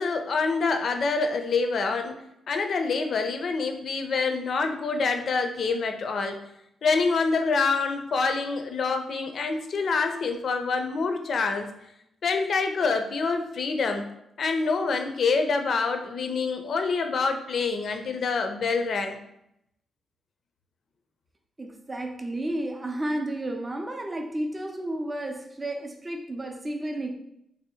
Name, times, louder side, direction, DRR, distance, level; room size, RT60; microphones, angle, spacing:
voice 1, 0.0-2.2 2.5-6.4 6.8-11.7 12.2-14.1 14.4-19.2, left 4 dB, 55° left, 6 dB, 0.5 m, -26 dB
voice 2, 21.6-27.1, right 1 dB, 20° right, 3 dB, 0.5 m, -32 dB
3.0 x 2.7 x 4.2 m, 0.79 s
cardioid pair, 130°, 0 cm